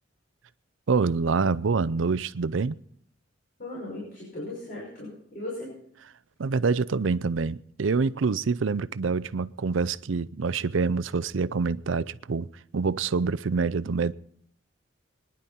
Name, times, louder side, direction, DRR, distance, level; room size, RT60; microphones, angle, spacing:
voice 1, 0.9-2.8 6.4-12.5 12.7-14.1, right 4 dB, 90° right, 0.5 m, -26 dB
voice 2, 3.6-5.7, left 1 dB, 50° left, 5.9 m, -37 dB
23.0 x 10.5 x 4.3 m
head